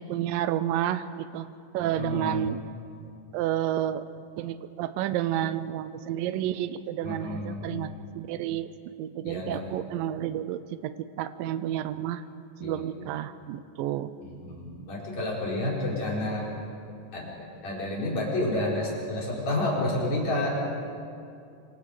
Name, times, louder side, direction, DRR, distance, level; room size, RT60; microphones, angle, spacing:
voice 1, 0.0-1.5 1.7-2.6 3.3-4.1 4.4-8.7 9.0-12.2 12.6-14.1, right 11 dB, 80° right, 13 dB, 2.0 m, -30 dB
voice 2, 1.8-2.5 7.0-7.7 9.2-9.6 12.6-12.8 14.2-16.5 17.1-17.3 17.6-20.7, left 1 dB, 45° left, -4 dB, 5.5 m, -30 dB
26.0 x 25.5 x 5.0 m, 2.5 s
omnidirectional pair, 4.7 m